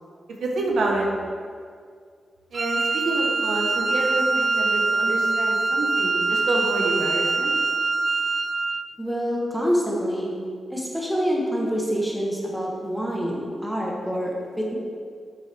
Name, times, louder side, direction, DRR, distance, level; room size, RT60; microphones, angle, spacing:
voice 1, 0.4-1.1 2.5-7.5, right 2 dB, 85° right, -1 dB, 1.3 m, -27 dB
Wind instrument woodwind instrument, 2.5-8.9, right 3 dB, 35° right, 0.3 m, -24 dB
voice 2, 9.0-10.3 10.7-14.7, equal, ahead, -3 dB, 1.2 m, -26 dB
8.0 x 7.4 x 3.5 m, 2.1 s
wide cardioid pair, 155°, 0 cm